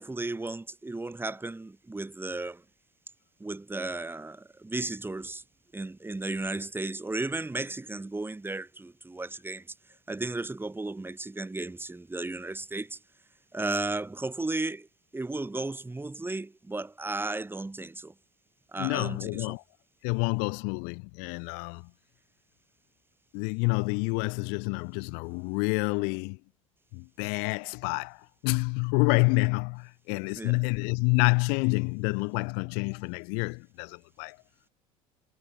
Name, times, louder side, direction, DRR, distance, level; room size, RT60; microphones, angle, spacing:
voice 1, 0.0-2.6 3.4-5.4 5.7-9.7 10.1-13.0 13.5-14.9 15.1-18.1 18.7-19.5 30.3-30.6, right 2 dB, 10° right, 3.3 m, -34 dB
voice 2, 18.8-19.6 20.0-21.9 23.3-26.4 26.9-34.4, left 39 dB, 70° left, 1.2 m, -28 dB
hypercardioid pair, 75°, 17 cm